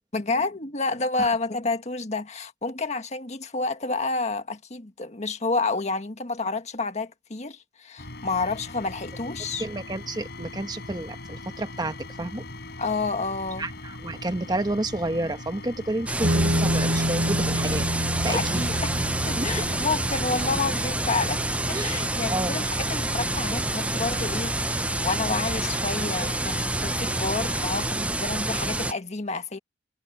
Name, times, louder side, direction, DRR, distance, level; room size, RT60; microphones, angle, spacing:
voice 1, 0.1-9.6 12.8-13.6 18.2-18.9 19.3-21.4 21.6-29.6, left 3 dB, 40° left, 1.6 m, -29 dB
sound 1, 8.0-27.9, left 2 dB, 65° left, 6.7 m, -40 dB
voice 2, 9.6-12.4 13.6-18.6 19.4-19.5 21.7-22.0 22.3-22.5, right 2 dB, 25° right, 1.2 m, -30 dB
sound 2, 16.1-28.9, right 2 dB, 10° right, 0.5 m, -28 dB
sound 3, 16.2-25.2, equal, 70° right, 3.3 m, -30 dB
head